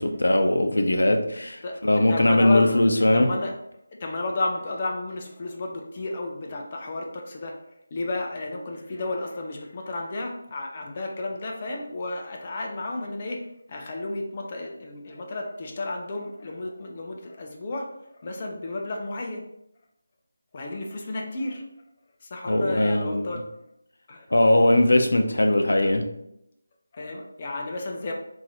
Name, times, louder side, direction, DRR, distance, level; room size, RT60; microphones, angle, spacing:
voice 1, 0.0-3.3 22.5-23.2 24.3-26.1, left 1 dB, 80° left, 5 dB, 0.6 m, -20 dB
voice 2, 1.6-2.8 3.1-3.6 4.0-7.6 7.9-17.9 18.2-19.5 20.5-21.7 22.2-23.4 24.1-24.3 25.8-25.9 26.9-28.1, left 2 dB, 25° left, 1 dB, 0.5 m, -32 dB
3.8 x 2.5 x 2.9 m, 0.78 s
figure-of-eight pair, 175°, 0 cm